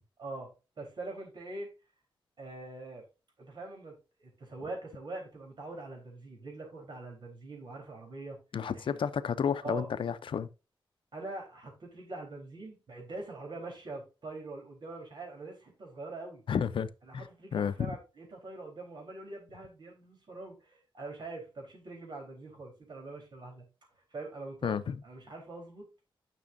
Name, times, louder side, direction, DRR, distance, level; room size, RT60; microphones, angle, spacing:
voice 1, 0.2-1.7 2.4-3.0 3.4-9.0 9.6-9.9 11.1-16.4 17.1-23.7 24.1-24.8 25.0-25.9, right 2 dB, 60° right, 3.7 m, -43 dB
voice 2, 8.5-10.5 16.5-17.3 17.5-17.9 24.6-25.0, left 7 dB, 75° left, 0.5 m, -31 dB
10.5 x 6.1 x 2.6 m
wide cardioid pair, 155°, 9 cm